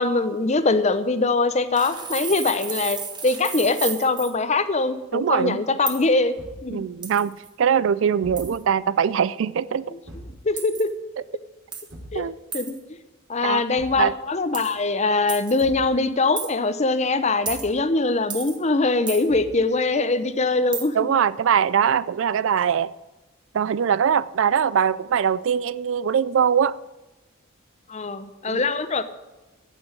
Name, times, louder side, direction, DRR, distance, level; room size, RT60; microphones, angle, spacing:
voice 1, 0.0-3.0 3.2-6.4 6.6-6.8 10.4-10.9 12.1-12.2 12.5-12.8 13.3-21.0 27.9-29.0, left 3 dB, 30° left, 0.7 m, -22 dB
sound 1, 1.7-4.3 5.9-6.0 7.0-7.5 8.4-8.6 10.6-10.9 11.7-11.9 12.5-12.8 14.5-14.7 15.3-15.6 16.4-16.5 17.5-17.7 18.3-18.6 19.1-19.2 20.7-20.8, right 6 dB, 20° right, 1.6 m, -32 dB
voice 2, 5.1-5.6 6.7-9.9 12.1-12.4 13.4-13.7 14.0-14.1 20.9-22.9 23.5-26.8 28.5-28.6, right 7 dB, 65° right, 0.4 m, -22 dB
Thump thud, 6.4-6.7 8.2-8.6 10.0-10.4 11.9-12.2 13.7-14.1 15.6-15.9 17.4-17.8 19.3-19.6, equal, 90° right, 4.7 m, -41 dB
14.5 x 6.2 x 8.8 m
head